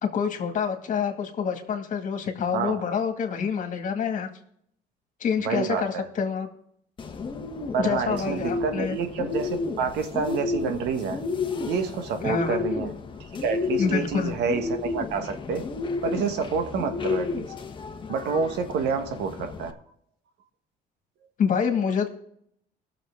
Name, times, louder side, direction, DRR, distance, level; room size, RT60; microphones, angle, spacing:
voice 1, 0.0-4.3 5.2-6.5 7.8-9.0 12.2-12.6 13.8-14.3 21.4-22.1, left 6 dB, 50° left, 5 dB, 2.0 m, -27 dB
voice 2, 5.4-6.0 7.7-11.2 11.7-13.0 13.4-15.6 16.0-17.5 18.1-19.8, right 5 dB, 85° right, 7 dB, 1.5 m, -28 dB
Bird, 7.0-19.7, left 4 dB, 30° left, 1.2 m, -32 dB
19.0 x 6.9 x 3.7 m, 0.69 s
cardioid pair, 110°, 17 cm